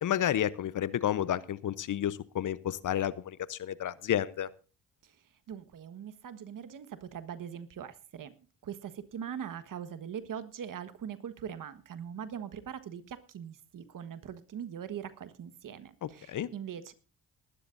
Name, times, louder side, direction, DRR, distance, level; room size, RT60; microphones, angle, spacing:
voice 1, 0.0-4.5 16.0-16.5, left 11 dB, 55° left, 18 dB, 0.9 m, -31 dB
voice 2, 5.5-8.3 8.6-16.9, right 8 dB, 60° right, 12 dB, 1.5 m, -41 dB
21.0 x 12.0 x 2.6 m, 0.34 s
supercardioid pair, 60°, 36 cm